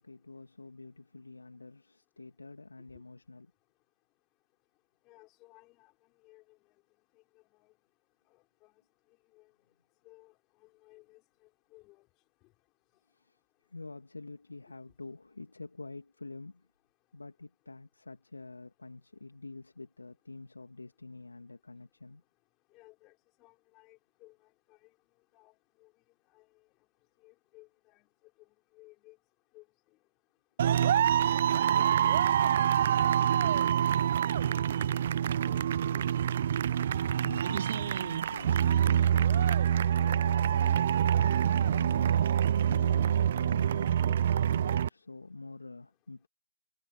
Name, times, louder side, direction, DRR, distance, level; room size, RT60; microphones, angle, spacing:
voice 1, 0.0-3.5 13.1-13.4 13.7-16.7 17.1-22.2 37.2-41.2 41.6-46.3, left 3 dB, 85° left, 2.3 m, -46 dB
voice 2, 5.0-5.9 6.2-6.6 7.1-7.2 7.6-7.7 8.3-8.7 9.3-9.5 10.0-10.3 10.6-12.0 22.7-23.1 23.4-24.4 24.7-24.9 25.3-25.9 26.3-26.5 27.2-28.1 28.7-29.2 29.5-29.6 31.6-32.1 32.4-33.3 34.7-36.1, left 22 dB, 20° left, 6.0 m, -59 dB
sound 1, 30.6-44.9, right 9 dB, 45° right, 0.3 m, -26 dB
figure-of-eight pair, 145°, 0 cm